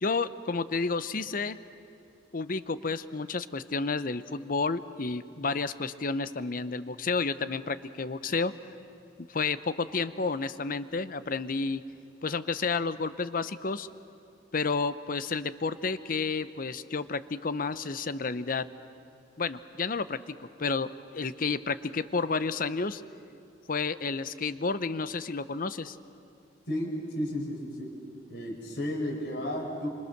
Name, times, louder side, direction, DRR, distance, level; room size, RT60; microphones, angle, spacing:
voice 1, 0.0-1.6 2.3-8.5 9.3-11.8 12.2-13.9 14.5-18.7 19.4-23.0 23.7-26.0, left 4 dB, 55° left, 14 dB, 0.8 m, -31 dB
voice 2, 26.7-27.9 28.3-29.9, left 1 dB, 70° left, 1 dB, 4.6 m, -33 dB
27.5 x 25.5 x 6.7 m, 2.4 s
head